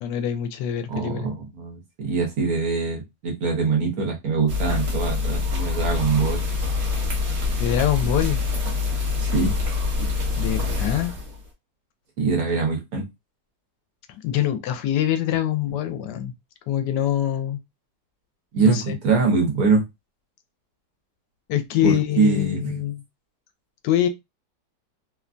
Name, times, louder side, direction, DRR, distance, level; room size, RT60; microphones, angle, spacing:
voice 1, 0.0-1.3 7.6-8.4 10.4-11.1 14.2-16.3 16.7-17.6 18.6-19.0 21.5-23.0 23.8-24.1, left 11 dB, 85° left, 1.2 m, -24 dB
voice 2, 0.9-6.4 9.2-9.5 12.2-13.0 18.5-19.8 21.8-22.8, right 4 dB, 65° right, 1.4 m, -23 dB
sound 1, 4.5-11.5, left 4 dB, 45° right, 1.0 m, -25 dB
3.2 x 2.2 x 2.5 m
omnidirectional pair, 1.8 m